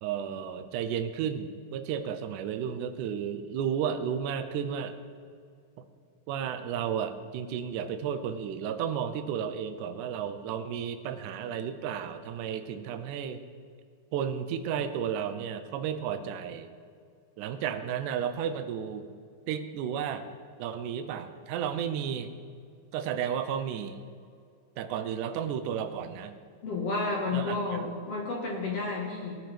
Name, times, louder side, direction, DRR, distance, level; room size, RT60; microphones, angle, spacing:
voice 1, 0.0-5.0 5.8-5.9 6.3-13.4 14.1-16.7 17.4-19.1 19.5-20.3 20.6-22.3 22.9-24.0 24.8-26.4 27.3-27.8, right 8 dB, 80° right, 8 dB, 1.8 m, -33 dB
voice 2, 26.6-29.4, left 3 dB, 55° left, -2 dB, 2.0 m, -31 dB
19.5 x 9.4 x 3.4 m, 2.2 s
omnidirectional pair, 4.3 m